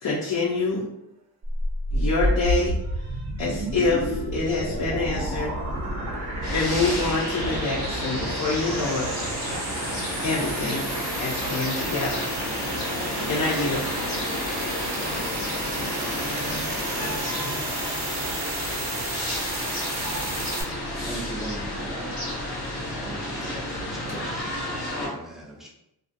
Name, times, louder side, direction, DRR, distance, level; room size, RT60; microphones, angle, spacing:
voice 1, 0.0-0.9 1.9-2.7 3.4-5.5 6.5-9.1 10.2-10.9 11.2-12.2 13.3-13.8, left 3 dB, 50° left, 0.6 m, -26 dB
sound 1, 1.4-20.6, right 1 dB, 90° right, 0.8 m, -30 dB
voice 2, 5.4-6.5 14.7-15.0 15.7-16.4 17.4-18.4 19.3-20.6, right 3 dB, 45° right, 0.7 m, -50 dB
sound 2, 6.4-25.1, left 1 dB, 90° left, 1.1 m, -32 dB
voice 3, 21.1-22.1 23.0-25.7, right 1 dB, ahead, 0.6 m, -40 dB
2.5 x 2.3 x 2.5 m
wide cardioid pair, 100°, 39 cm